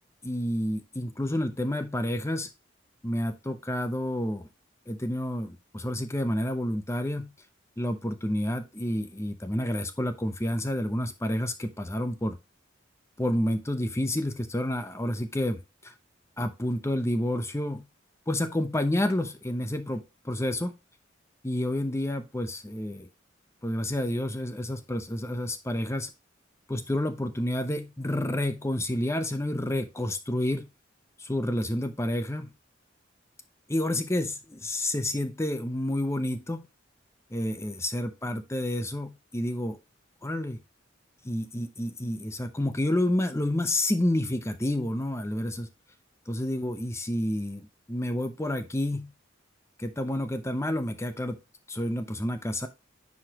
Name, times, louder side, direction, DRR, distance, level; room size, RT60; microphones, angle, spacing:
voice 1, 0.2-2.5 3.0-4.5 4.9-7.3 7.8-12.4 13.2-15.9 16.4-17.8 18.3-20.7 21.4-23.1 23.6-26.1 26.7-30.7 31.2-32.5 33.7-36.6 37.3-39.8 40.2-40.6 41.2-45.7 46.3-49.1 49.8-51.4 51.7-52.7, left 1 dB, 15° left, 0.7 m, -29 dB
9.6 x 5.0 x 2.9 m
head